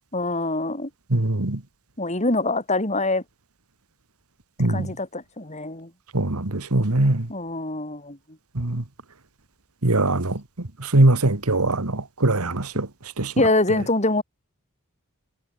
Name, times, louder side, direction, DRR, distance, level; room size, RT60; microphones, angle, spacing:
voice 1, 0.1-0.9 2.0-3.2 4.7-5.9 7.3-8.2 13.4-14.2, left 2 dB, 30° left, 5.7 m, -24 dB
voice 2, 1.1-1.6 4.6-4.9 6.1-7.3 8.6-8.8 9.8-12.9 13.2-13.3, right 2 dB, 85° right, 2.0 m, -22 dB
head